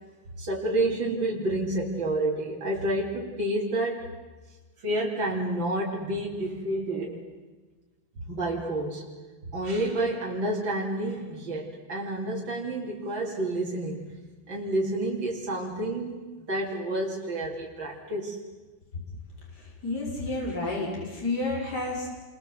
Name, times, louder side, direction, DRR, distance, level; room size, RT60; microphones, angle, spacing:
voice 1, 0.4-4.2 4.8-7.3 8.2-9.0 9.5-14.1 14.5-18.4, right 1 dB, 75° right, -3 dB, 4.1 m, -29 dB
voice 2, 19.5-22.1, left 2 dB, 55° left, -2 dB, 6.3 m, -31 dB
28.5 x 24.0 x 7.9 m, 1.3 s
omnidirectional pair, 2.1 m